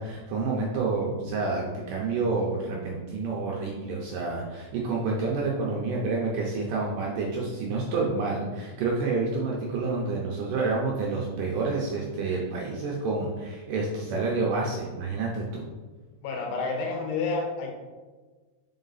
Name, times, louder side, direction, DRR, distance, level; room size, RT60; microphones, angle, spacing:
voice 1, 0.0-15.6, right 3 dB, 75° right, -3 dB, 2.0 m, -29 dB
voice 2, 16.2-17.7, left 3 dB, 85° left, 1 dB, 3.0 m, -29 dB
5.4 x 5.1 x 4.0 m, 1.3 s
omnidirectional pair, 4.5 m